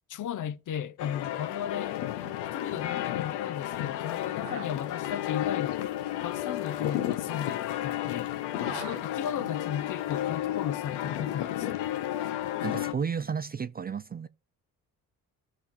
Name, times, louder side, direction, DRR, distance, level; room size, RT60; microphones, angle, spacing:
voice 1, 0.1-2.0 2.5-5.9 6.2-8.4 8.7-11.9, left 9 dB, 50° left, 0.6 m, -36 dB
Notre Dame Bells Paris, 1.0-12.9, left 13 dB, 85° left, 0.7 m, -32 dB
sound 1, 1.2-1.3 1.5-1.9 2.2-3.4 4.1-8.1 8.3-10.6 10.9-11.8, right 10 dB, 85° right, 0.9 m, -49 dB
voice 2, 12.6-14.3, right 6 dB, 25° right, 0.4 m, -32 dB
14.0 x 5.7 x 2.5 m
supercardioid pair, 55°, 40 cm